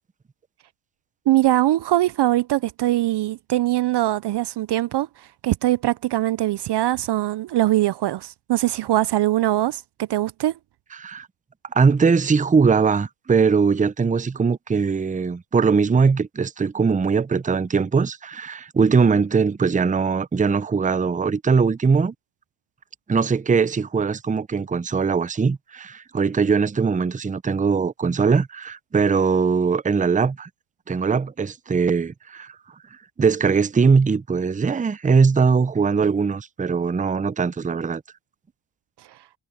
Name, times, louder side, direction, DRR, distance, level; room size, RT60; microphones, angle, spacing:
voice 1, 1.3-5.1 5.4-10.5, right 15 dB, 55° right, 0.6 m, -22 dB
voice 2, 11.0-11.3 11.7-22.1 23.1-30.5 30.9-32.5 33.2-38.0, right 5 dB, 15° right, 0.6 m, -21 dB
cardioid pair, 65°, 49 cm